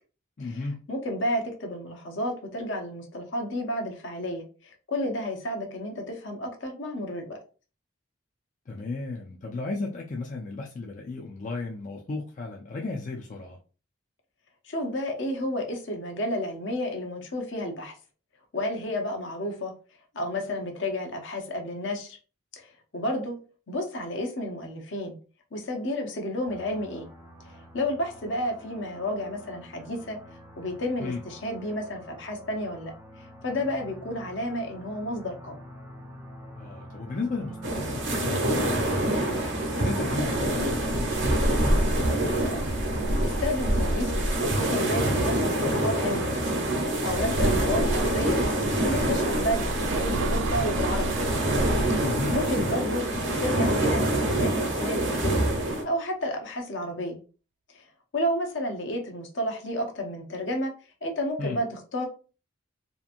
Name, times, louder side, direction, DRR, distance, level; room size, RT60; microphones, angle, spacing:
voice 1, 0.4-0.8 8.7-13.6 31.0-31.2 36.5-41.5 52.0-52.4 61.4-61.6, left 3 dB, 40° left, 0.4 m, -35 dB
voice 2, 0.9-7.4 14.6-17.9 18.5-19.8 20.1-22.2 22.5-23.4 23.7-25.2 25.5-27.1 27.7-30.2 30.6-35.5 42.4-42.7 43.2-46.4 47.0-51.5 51.9-52.0 52.3-53.0 53.4-55.4 55.8-57.2 57.7-57.8 58.1-60.7 61.0-62.1, left 1 dB, 65° left, 0.7 m, -31 dB
sound 1, 26.5-42.0, right 1 dB, 15° right, 0.5 m, -44 dB
sound 2, 37.6-55.8, right 1 dB, 65° right, 0.8 m, -25 dB
sound 3, 48.7-54.8, right 4 dB, 90° right, 0.3 m, -36 dB
2.8 x 2.5 x 2.5 m
head